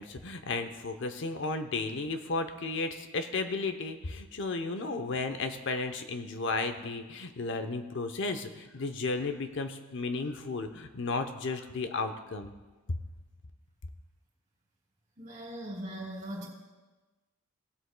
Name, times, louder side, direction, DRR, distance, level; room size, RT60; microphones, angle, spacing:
voice 1, 0.0-12.5, left 3 dB, 60° left, 7 dB, 0.7 m, -34 dB
voice 2, 15.2-16.5, right 1 dB, 35° right, -2 dB, 2.9 m, -39 dB
18.5 x 8.0 x 2.2 m, 1.2 s
head